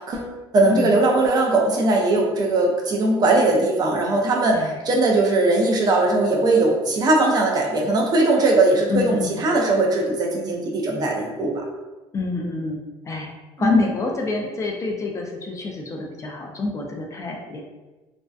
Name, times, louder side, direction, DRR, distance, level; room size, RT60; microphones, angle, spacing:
voice 1, 0.0-11.6 13.6-13.9, right 2 dB, 40° right, 0 dB, 0.4 m, -20 dB
voice 2, 8.9-9.4 12.1-12.8 13.1-13.3 13.6-17.6, left 3 dB, 30° left, 1 dB, 0.4 m, -28 dB
2.5 x 2.1 x 2.3 m, 1.1 s
cardioid pair, 125°, 11 cm